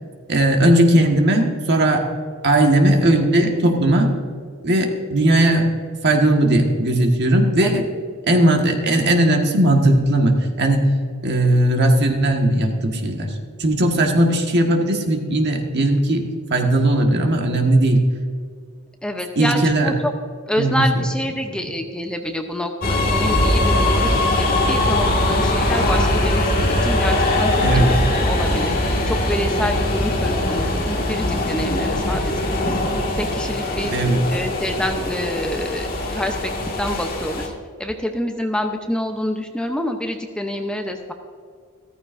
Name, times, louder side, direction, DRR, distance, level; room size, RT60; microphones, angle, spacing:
voice 1, 0.3-2.1 2.4-4.1 4.6-5.7 6.0-7.8 8.3-10.9 11.2-13.3 13.6-16.2 16.5-18.0 19.4-19.9 20.6-20.8 27.6-28.0 33.9-34.3, right 1 dB, 50° right, 2 dB, 1.5 m, -17 dB
voice 2, 19.0-20.1 20.5-26.5 26.8-27.5 27.9-28.7 29.1-32.8 33.1-33.9 34.3-35.9 36.1-36.5 36.8-37.5 37.8-41.1, equal, 5° left, 4 dB, 0.6 m, -27 dB
sound 1, 22.8-37.5, left 1 dB, 40° left, 1.9 m, -21 dB
14.5 x 14.0 x 2.6 m, 2.1 s
head